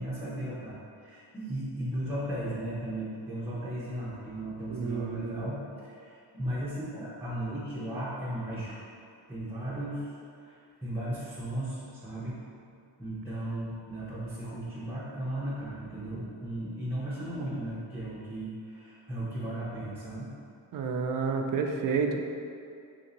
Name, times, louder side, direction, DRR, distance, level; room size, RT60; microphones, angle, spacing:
voice 1, 0.0-8.8 9.3-10.1 10.4-12.3 12.7-20.4, right 1 dB, 5° right, -10 dB, 0.8 m, -36 dB
voice 2, 4.7-5.5 20.7-22.2, right 5 dB, 45° right, 3 dB, 0.4 m, -30 dB
3.1 x 2.7 x 3.8 m, 2.4 s
cardioid pair, 75°, 46 cm